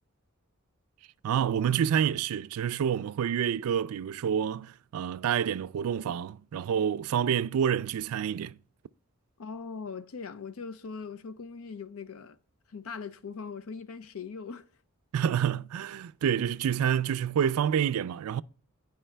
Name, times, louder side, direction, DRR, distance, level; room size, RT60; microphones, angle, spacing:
voice 1, 1.2-8.6 15.1-18.4, right 8 dB, 85° right, 0.3 m, -28 dB
voice 2, 9.4-12.4 12.7-14.7, left 5 dB, 80° left, 0.5 m, -40 dB
10.0 x 4.7 x 3.2 m
head